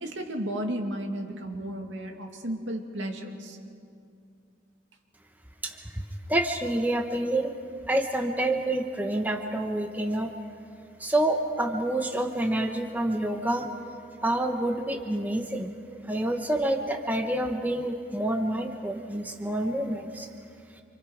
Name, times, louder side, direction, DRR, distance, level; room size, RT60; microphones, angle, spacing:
voice 1, 0.0-3.6, right 1 dB, 80° right, 2 dB, 2.4 m, -33 dB
voice 2, 5.6-6.0 6.3-7.5 7.9-10.3 11.0-13.7 14.2-15.7 16.0-20.3, right 1 dB, 10° right, 3 dB, 1.1 m, -28 dB
28.0 x 26.5 x 5.0 m, 2.4 s
head